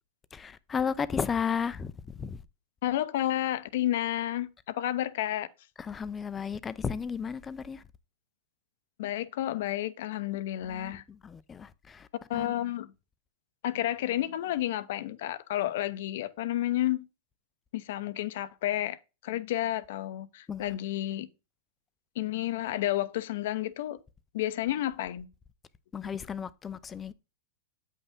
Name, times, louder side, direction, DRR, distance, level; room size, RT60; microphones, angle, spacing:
voice 1, 0.3-2.4 5.8-7.8 10.7-12.1 12.3-12.5 20.5-20.8 25.9-27.1, left 6 dB, 20° left, 0.6 m, -34 dB
voice 2, 2.8-5.5 9.0-11.0 12.3-12.9 13.6-17.1 17.7-19.0 19.2-21.3 22.2-24.0 24.3-25.3, left 13 dB, 70° left, 0.8 m, -31 dB
8.5 x 5.5 x 3.6 m
hypercardioid pair, 125°, 0 cm